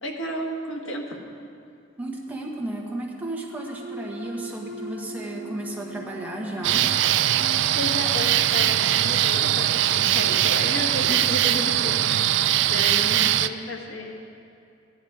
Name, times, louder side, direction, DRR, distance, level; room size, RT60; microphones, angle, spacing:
voice 1, 0.0-1.2 7.7-12.3 12.6-14.2, left 1 dB, 85° left, 1 dB, 1.5 m, -32 dB
voice 2, 2.0-6.9, right 1 dB, 10° right, -2 dB, 1.3 m, -33 dB
sound 1, 3.5-8.9, right 1 dB, 65° left, 1.9 m, -40 dB
sound 2, 6.6-13.5, right 12 dB, 60° right, 0.3 m, -21 dB
sound 3, 7.3-13.0, right 1 dB, 30° right, 1.7 m, -50 dB
15.0 x 10.5 x 4.8 m, 2.6 s
head